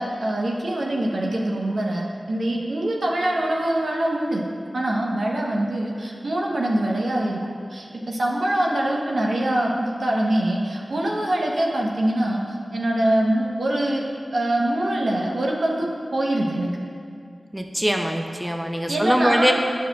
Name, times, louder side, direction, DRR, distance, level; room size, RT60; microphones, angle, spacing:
voice 1, 0.0-4.4 4.7-7.4 7.7-12.4 12.7-14.1 14.3-16.8 18.9-19.5, right 1 dB, 75° right, -1 dB, 0.9 m, -24 dB
voice 2, 17.5-19.5, equal, 10° right, 4 dB, 0.5 m, -22 dB
9.0 x 6.3 x 2.3 m, 2.3 s
cardioid pair, 45°, 0 cm